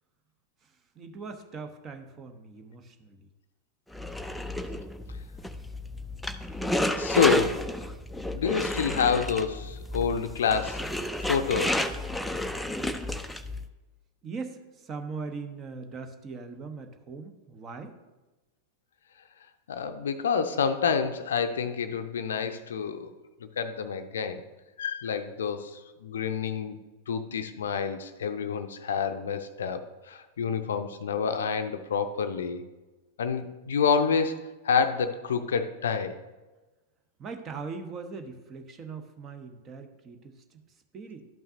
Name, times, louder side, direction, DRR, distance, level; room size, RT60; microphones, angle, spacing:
voice 1, 0.6-3.3 14.2-18.0 37.2-41.3, right 4 dB, 25° right, 7 dB, 0.8 m, -41 dB
sound 1, 3.9-13.6, left 1 dB, 5° left, 0.4 m, -31 dB
voice 2, 7.0-7.7 8.3-10.9 11.2-11.9 19.7-23.1 23.4-24.4 24.8-26.8 27.1-32.6 33.2-36.2, left 6 dB, 65° left, 10 dB, 0.5 m, -28 dB
12.0 x 5.7 x 2.7 m, 1.2 s
figure-of-eight pair, 90°, 0 cm